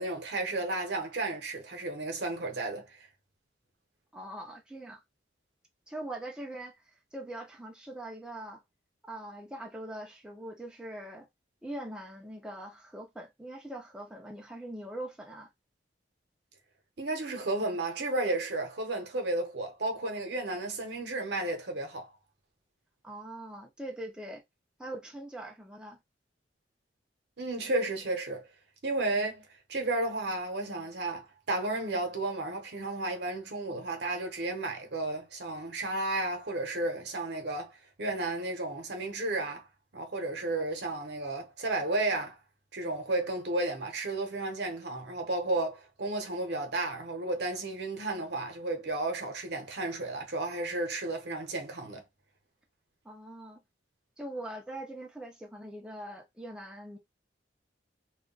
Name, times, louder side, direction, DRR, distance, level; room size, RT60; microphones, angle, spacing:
voice 1, 0.0-3.0 17.0-22.1 27.4-28.5 28.8-39.7 39.9-42.4 42.7-52.0, right 2 dB, 60° right, 0.8 m, -33 dB
voice 2, 4.1-5.0 5.9-8.6 9.0-11.3 11.6-15.5 23.0-24.4 24.8-26.0 53.0-53.6 54.2-57.0, right 1 dB, 5° right, 0.5 m, -42 dB
2.3 x 2.1 x 3.7 m
head